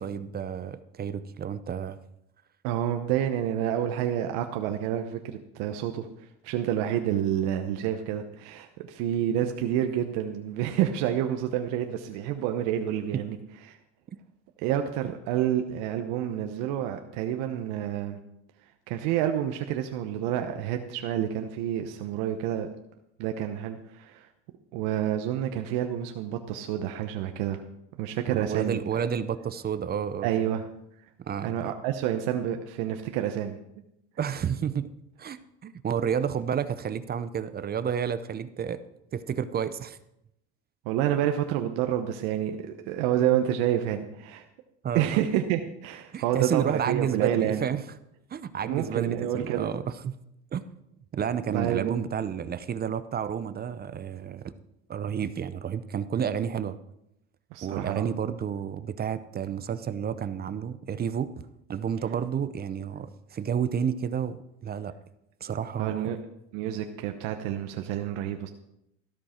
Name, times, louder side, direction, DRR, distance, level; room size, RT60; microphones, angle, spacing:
voice 1, 0.0-2.0 13.1-13.2 28.3-30.3 31.2-31.7 34.2-34.9 35.2-38.8 39.1-40.0 41.0-41.1 44.8-45.2 46.1-47.8 48.3-50.1 50.5-50.6 51.1-54.5 54.9-56.8 57.6-61.3 61.7-64.9 65.4-66.1, right 8 dB, 30° right, 13 dB, 0.7 m, -31 dB
voice 2, 2.6-13.4 13.7-13.8 14.6-18.2 18.9-22.7 23.2-24.3 24.7-27.6 28.0-28.8 30.2-30.7 31.4-33.6 40.8-44.5 44.9-47.6 48.6-49.7 51.5-52.0 57.5-58.1 65.8-66.2 66.5-68.5, right 11 dB, 80° right, 6 dB, 1.0 m, -28 dB
13.5 x 12.5 x 4.4 m, 0.82 s
cardioid pair, 115°, 32 cm